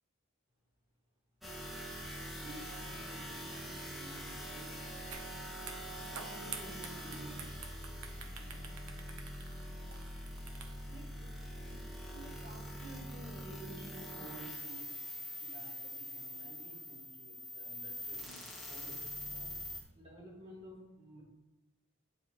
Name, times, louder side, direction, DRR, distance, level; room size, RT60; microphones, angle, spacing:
sound 1, 1.4-19.8, equal, ahead, 1.2 m, -44 dB
voice 1, 2.3-7.4 8.2-8.7 10.9-11.8 12.1-14.9 15.4-21.2, right 1 dB, 30° right, -5 dB, 2.9 m, -53 dB
sound 2, 5.1-5.3 5.6-11.0, right 6 dB, 90° right, 0.9 m, -48 dB
8.5 x 4.8 x 4.9 m, 1.1 s
head